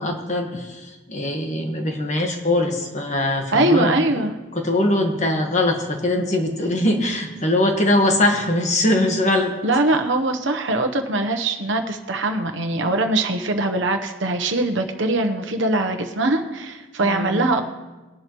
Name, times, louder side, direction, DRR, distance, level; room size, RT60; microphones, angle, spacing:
voice 1, 0.0-4.3 4.5-9.5 17.0-17.5, left 1 dB, 35° left, 3 dB, 1.5 m, -22 dB
voice 2, 3.5-4.3 9.6-17.6, right 2 dB, 70° right, 5 dB, 1.0 m, -22 dB
21.0 x 11.0 x 3.1 m, 1.2 s
head